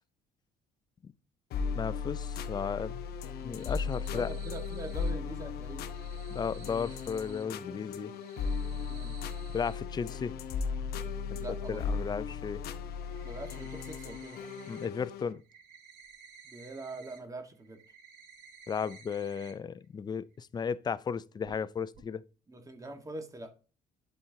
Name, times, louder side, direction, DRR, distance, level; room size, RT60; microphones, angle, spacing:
sound 1, 1.5-15.3, left 5 dB, 70° left, 0.8 m, -36 dB
voice 1, 1.8-3.0 3.4-4.3 6.3-8.1 9.5-10.4 11.7-12.6 14.7-15.4 18.7-22.2, left 6 dB, 25° left, 0.4 m, -35 dB
sound 2, 3.3-5.1 5.7-7.4 8.0-9.8 11.8-11.9 12.3-12.4 12.9-14.9 15.2-17.2 17.5-19.5 19.8-19.9 20.3-20.4 21.4-21.6 21.9-22.0, right 6 dB, 75° right, 2.3 m, -55 dB
voice 2, 4.0-5.8 8.9-9.1 11.3-11.9 13.2-14.4 16.4-17.8 22.5-23.5, right 2 dB, 20° right, 1.5 m, -43 dB
11.5 x 4.4 x 2.7 m
cardioid pair, 110°, 17 cm